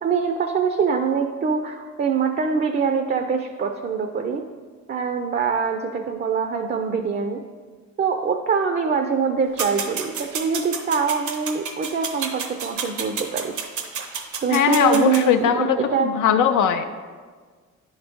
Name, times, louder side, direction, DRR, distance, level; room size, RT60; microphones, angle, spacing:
voice 1, 0.0-4.4 4.9-7.4 8.0-13.5 14.4-16.1, right 6 dB, 35° right, 6 dB, 0.4 m, -24 dB
sound 1, 9.6-15.2, right 6 dB, 80° right, 0.8 m, -31 dB
voice 2, 14.5-16.8, left 8 dB, 90° left, 6 dB, 0.5 m, -20 dB
10.0 x 4.0 x 3.5 m, 1.5 s
cardioid pair, 130°, 30 cm